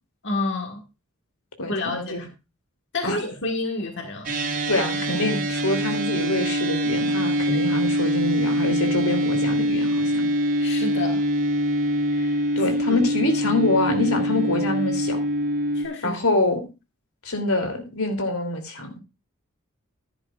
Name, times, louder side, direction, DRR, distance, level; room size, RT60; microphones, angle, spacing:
voice 1, 0.2-0.8 1.7-2.3 2.9-4.3 7.5-7.7 10.6-11.2 12.1-12.4 13.5-13.6 14.3-14.5 15.8-16.2, left 2 dB, 55° left, 3 dB, 1.6 m, -29 dB
voice 2, 1.6-2.2 3.0-3.2 4.7-10.3 12.6-15.2 16.0-16.6 17.2-18.9, left 2 dB, 75° left, 5 dB, 2.9 m, -25 dB
sound 1, 4.2-15.8, equal, 40° right, 3.0 m, -24 dB
15.0 x 10.5 x 2.4 m, 0.27 s
head